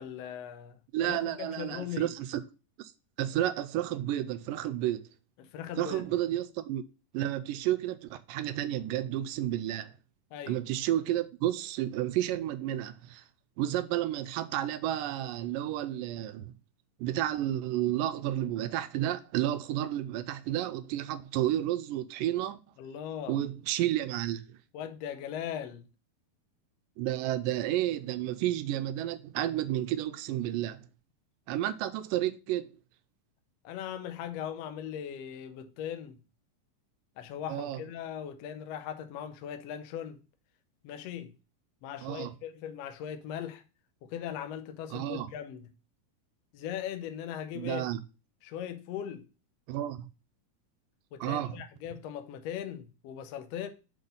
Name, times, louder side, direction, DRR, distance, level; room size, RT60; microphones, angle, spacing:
voice 1, 0.0-2.1 5.4-6.0 10.3-10.6 22.8-23.4 24.7-25.8 33.6-36.2 37.2-40.2 40.8-41.3 41.8-43.6 44.0-45.7 46.5-47.8 48.4-49.3 51.1-53.7, left 9 dB, 80° left, 1.5 m, -39 dB
voice 2, 0.9-2.4 2.8-2.9 3.2-5.1 5.8-6.8 7.1-9.9 10.5-13.2 13.6-16.5 17.0-22.6 23.3-24.6 27.0-30.8 31.5-32.7 37.5-37.8 42.0-42.3 44.9-45.3 47.6-48.0 49.7-50.1 51.2-51.6, right 13 dB, 85° right, 2.2 m, -31 dB
6.2 x 4.1 x 5.1 m
omnidirectional pair, 3.8 m